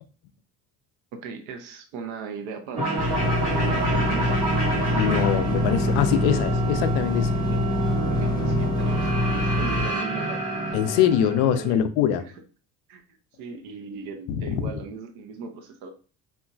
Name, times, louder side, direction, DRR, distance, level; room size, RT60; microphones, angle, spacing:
voice 1, 1.1-2.8 3.4-4.3 7.4-7.6 8.1-10.4 11.2-11.8 12.2-12.3 12.9-15.9, right 5 dB, 65° right, 0.7 m, -38 dB
sound 1, 2.7-11.7, right 2 dB, 85° right, 1.1 m, -27 dB
sound 2, 3.0-9.8, left 1 dB, 10° left, 0.5 m, -26 dB
voice 2, 5.0-7.4 10.7-12.2 14.3-14.6, left 10 dB, 55° left, 0.5 m, -23 dB
3.0 x 2.5 x 2.3 m
hypercardioid pair, 65°, 44 cm